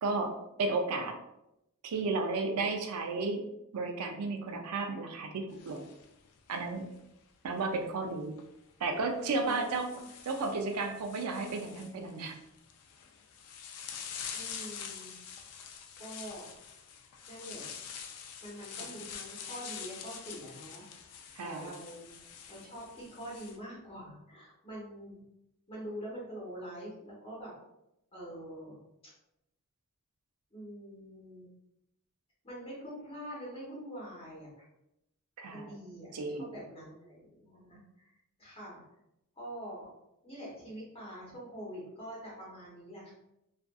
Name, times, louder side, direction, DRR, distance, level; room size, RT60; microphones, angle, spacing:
voice 1, 0.0-1.2 1.8-3.5 3.7-5.8 6.5-6.9 7.4-8.3 8.8-9.9 10.2-12.4 18.8-18.9 21.4-21.8 35.4-35.7 36.1-36.5, right 3 dB, 80° right, 4 dB, 0.4 m, -33 dB
sound 1, 5.5-7.0 8.3-8.4 9.2-23.6, left 7 dB, 85° left, 0.4 m, -46 dB
voice 2, 14.3-15.1 16.0-16.5 17.3-17.7 18.4-20.8 21.4-22.1 22.5-25.2 25.7-27.5 28.1-28.8 29.0-29.1 30.5-31.5 32.4-34.5 35.5-38.1 38.4-38.8 39.4-39.9 40.2-43.1, equal, 25° left, -6 dB, 1.1 m, -45 dB
2.5 x 2.5 x 2.3 m, 0.84 s
head